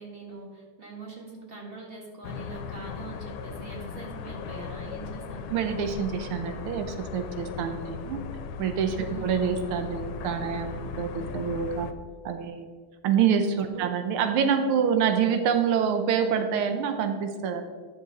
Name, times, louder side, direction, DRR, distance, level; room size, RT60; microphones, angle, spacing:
voice 1, 0.0-5.5 9.0-9.3 13.7-13.8, right 3 dB, 30° right, -1 dB, 1.7 m, -42 dB
sound 1, 2.2-11.9, left 6 dB, 75° left, 1.4 m, -37 dB
voice 2, 5.5-8.2 8.6-11.9 12.2-12.7 13.0-17.6, right 7 dB, 85° right, 7 dB, 1.6 m, -26 dB
10.5 x 6.3 x 4.0 m, 1.5 s
omnidirectional pair, 2.3 m